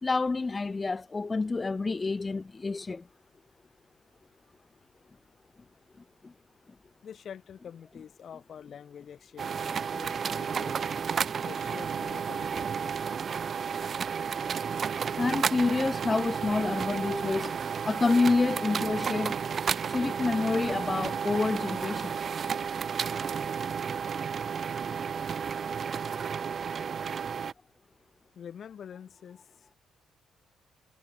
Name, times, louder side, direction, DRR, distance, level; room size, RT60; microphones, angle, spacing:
voice 1, 0.0-3.0 15.2-17.5 17.8-19.4 19.9-22.3, left 3 dB, 25° left, 1.2 m, -28 dB
voice 2, 7.0-10.7 11.4-13.0 28.3-29.4, left 8 dB, 55° left, 6.7 m, -46 dB
sound 1, 9.4-27.5, right 6 dB, 50° right, 1.1 m, -32 dB
cardioid pair, 90°, 0 cm